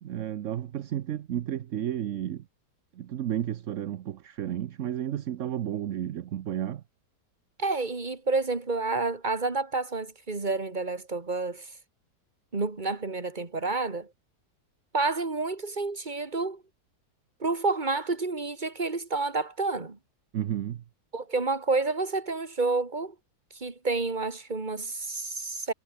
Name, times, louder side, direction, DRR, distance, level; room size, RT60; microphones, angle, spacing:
voice 1, 0.0-2.4 3.0-6.8 20.3-20.8, right 11 dB, 60° right, 0.9 m, -32 dB
voice 2, 7.6-11.7 12.5-14.1 14.9-16.6 17.4-20.0 21.1-23.1 23.5-25.7, right 3 dB, 25° right, 2.3 m, -29 dB
omnidirectional pair, 1.9 m